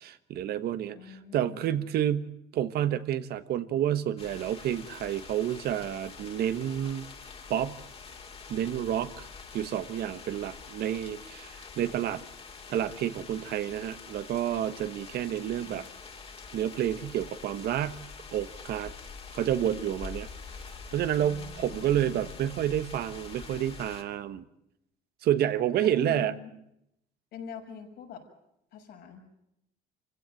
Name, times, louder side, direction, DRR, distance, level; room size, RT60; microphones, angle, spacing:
voice 1, 0.0-7.1 7.5-7.8 8.5-9.3 9.5-12.2 12.7-15.9 16.5-18.0 18.3-18.9 19.3-20.3 20.9-24.4 25.2-26.3, right 11 dB, 70° right, 12 dB, 1.3 m, -29 dB
voice 2, 0.9-1.7 15.5-15.9 21.2-22.2 26.0-26.5 27.3-28.2 28.7-29.2, left 6 dB, 80° left, 1 dB, 6.6 m, -45 dB
sound 1, 4.2-24.0, left 5 dB, 35° left, 2.7 m, -45 dB
26.0 x 16.0 x 9.1 m, 0.81 s
cardioid pair, 110°, 17 cm